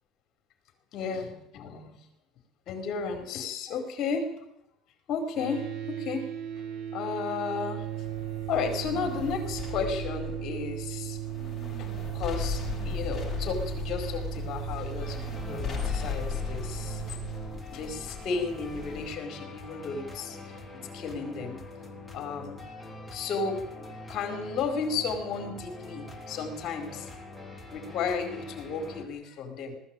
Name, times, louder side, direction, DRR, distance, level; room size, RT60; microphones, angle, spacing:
voice 1, 0.9-2.1 2.7-4.3 5.1-6.3 6.9-7.8 8.5-11.2 11.8-17.2 17.7-21.6 22.1-22.6 23.1-23.6 24.1-27.1 27.7-29.7, left 5 dB, 50° left, 5 dB, 4.8 m, -33 dB
sound 1, 5.3-17.5, right 12 dB, 80° right, 6.3 m, -37 dB
sound 2, 7.8-19.1, left 6 dB, 20° left, 6.9 m, -37 dB
sound 3, 15.0-29.1, left 2 dB, 5° left, 3.3 m, -44 dB
20.0 x 15.0 x 9.2 m, 0.81 s
cardioid pair, 145°, 0 cm